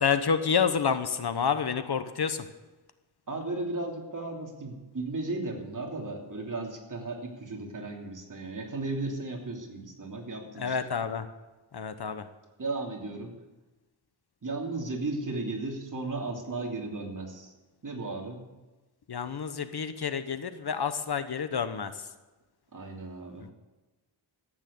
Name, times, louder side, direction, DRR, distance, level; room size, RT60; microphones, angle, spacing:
voice 1, 0.0-2.5 10.6-11.3 11.7-12.2 19.1-21.9 23.4-23.5, left 6 dB, 55° left, 10 dB, 1.0 m, -29 dB
voice 2, 3.3-10.9 12.6-13.3 14.4-17.5 17.8-18.4 22.7-23.5, right 2 dB, 40° right, 1 dB, 3.0 m, -35 dB
14.5 x 9.0 x 8.6 m, 1.1 s
wide cardioid pair, 100°, 46 cm